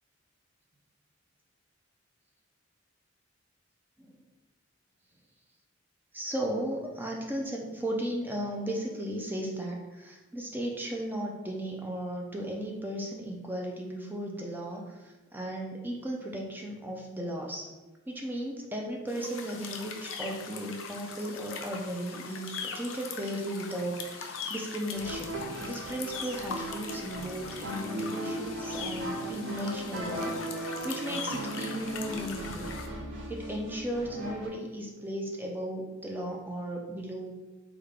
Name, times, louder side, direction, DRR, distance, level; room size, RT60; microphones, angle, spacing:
voice 1, 6.1-15.0 15.3-17.7 18.1-30.3 30.8-32.7 33.3-37.3, right 1 dB, 10° right, 0 dB, 0.3 m, -35 dB
sound 1, 19.1-32.9, left 5 dB, 70° left, 0.4 m, -41 dB
sound 2, 24.9-34.5, right 1 dB, 60° right, 0.5 m, -37 dB
3.4 x 2.3 x 3.3 m, 1.2 s
head